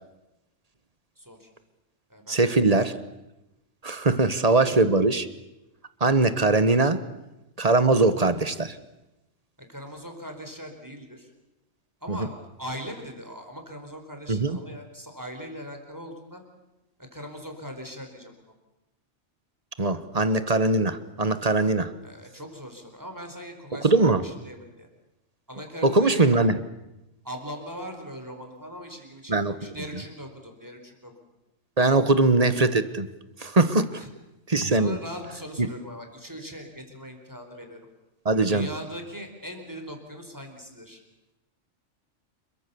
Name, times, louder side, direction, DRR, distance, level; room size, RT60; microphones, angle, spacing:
voice 1, 1.2-1.5 2.1-2.8 4.6-4.8 9.7-11.3 12.0-16.4 17.1-18.3 21.6-21.8 22.0-24.9 25.5-26.4 27.2-31.1 34.0-34.1 34.7-37.8 38.5-41.0, equal, 15° right, 4 dB, 4.4 m, -40 dB
voice 2, 2.3-3.0 3.8-5.3 6.0-7.0 7.6-8.8 12.1-12.3 14.3-14.6 19.8-21.9 23.8-24.2 25.8-26.6 29.3-29.7 31.8-33.1 33.4-34.0 34.5-35.0 35.6-35.7 38.2-38.7, right 3 dB, 30° right, 12 dB, 1.3 m, -21 dB
28.5 x 22.5 x 7.0 m, 0.96 s
omnidirectional pair, 1.3 m